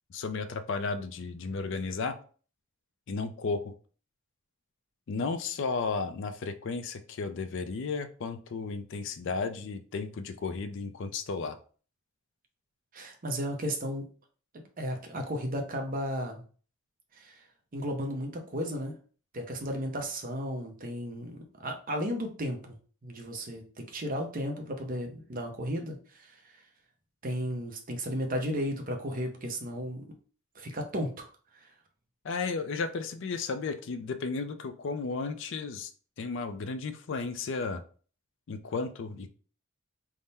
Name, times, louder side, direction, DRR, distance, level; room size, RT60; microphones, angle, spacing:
voice 1, 0.1-2.2 3.1-3.7 5.1-11.6 32.2-35.9 36.2-37.8 38.5-39.3, left 4 dB, 55° left, 9 dB, 0.4 m, -34 dB
voice 2, 12.9-14.0 14.5-16.4 17.1-17.4 17.7-18.9 19.3-22.8 23.0-26.6 27.2-30.1 30.5-31.3 31.5-31.7, equal, 40° right, 3 dB, 0.7 m, -34 dB
3.6 x 2.1 x 4.0 m, 0.40 s
head